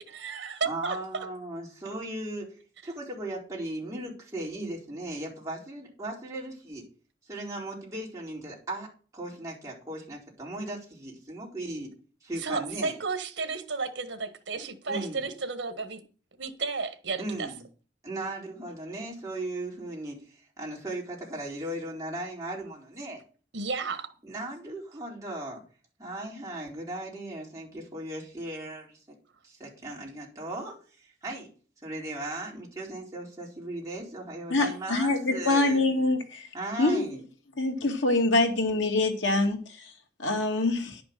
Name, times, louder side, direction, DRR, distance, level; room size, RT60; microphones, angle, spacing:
voice 1, 0.0-1.0 12.4-16.0 16.4-17.5 23.5-24.1, right 4 dB, 80° right, 1.4 m, -33 dB
voice 2, 0.6-6.8 7.3-8.9 9.1-11.9 12.2-12.9 14.9-15.3 17.2-17.6 18.0-23.2 24.2-25.6 26.0-29.0 29.4-31.5 31.8-35.8 36.5-37.2, right 1 dB, 15° right, 4.2 m, -37 dB
voice 3, 34.5-36.5 36.8-37.0 37.6-39.9 40.2-41.0, left 2 dB, 85° left, 2.3 m, -25 dB
10.5 x 6.0 x 6.8 m
head